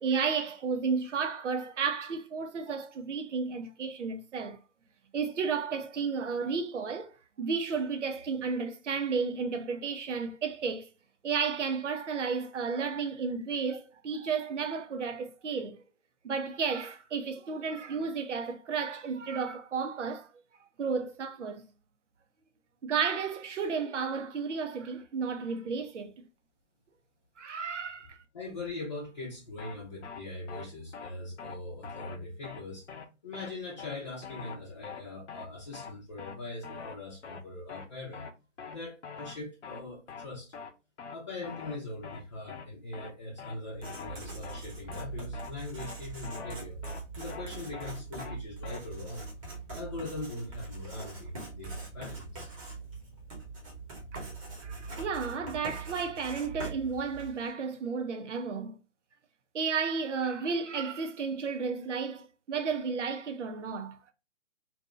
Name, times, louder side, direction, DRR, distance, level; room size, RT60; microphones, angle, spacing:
voice 1, 0.0-4.6 5.1-10.9 11.2-15.8 16.2-20.3 20.8-21.6 22.8-26.1 27.4-28.2 54.1-54.3 54.6-58.8 59.5-64.1, right 5 dB, 75° right, 0.8 m, -33 dB
voice 2, 28.3-32.9 33.2-38.3 38.7-40.5 41.1-46.8 47.2-49.3 49.7-52.5, left 2 dB, 25° left, 0.6 m, -41 dB
sound 1, 29.6-29.8 30.0-30.2 30.5-30.7 30.9-31.1 31.4-31.6 31.8-32.2 32.4-32.6 32.9-33.1 33.3-33.5 33.8-34.0 34.2-34.6 34.8-35.0 35.3-35.5 35.7-35.9 36.2-36.4 36.6-37.0 37.2-37.4 37.7-37.9 38.1-38.3 38.6-38.8 39.0-39.4 39.6-39.8 40.1-40.3 40.5-40.7 41.0-41.2 41.4-41.8 42.0-42.2 42.5-42.7 42.9-43.1 43.4-43.6 43.8-44.2 44.4-44.6 44.9-45.1 45.3-45.5 45.8-46.0 46.2-46.6 46.8-47.0 47.3-47.5 47.7-47.9 48.2-48.4 48.6-48.8, left 6 dB, 70° left, 0.7 m, -43 dB
Writing, 43.7-57.5, right 3 dB, 25° right, 1.1 m, -42 dB
2.7 x 2.5 x 3.1 m
hypercardioid pair, 160°, 37 cm